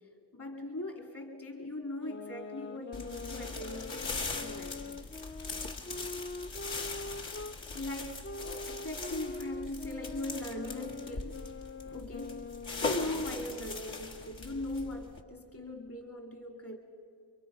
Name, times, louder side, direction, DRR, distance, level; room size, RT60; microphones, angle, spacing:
voice 1, 0.3-4.8 7.7-11.6 11.9-12.5 12.8-16.8, left 1 dB, 40° left, 4 dB, 2.4 m, -40 dB
sound 1, 2.0-7.6 8.2-13.8, left 3 dB, 25° left, 0.6 m, -44 dB
sound 2, 2.9-15.2, left 3 dB, 70° left, 2.3 m, -40 dB
29.5 x 23.5 x 5.3 m, 2.3 s
cardioid pair, 55°, 48 cm